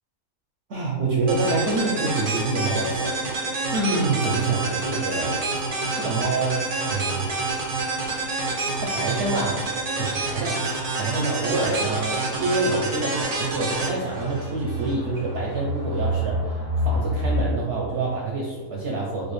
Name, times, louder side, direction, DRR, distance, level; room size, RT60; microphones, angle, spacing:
voice 1, 0.7-3.2 3.7-5.4 5.9-6.6 6.9-7.3 8.8-10.7 11.0-16.6 16.8-19.3, right 3 dB, 65° right, -3 dB, 0.7 m, -26 dB
sound 1, 1.3-14.9, right 3 dB, 85° right, 0.3 m, -28 dB
sound 2, 10.3-10.4 11.3-17.4, equal, 60° left, 1.2 m, -29 dB
4.6 x 2.1 x 3.1 m, 1.3 s
omnidirectional pair, 1.6 m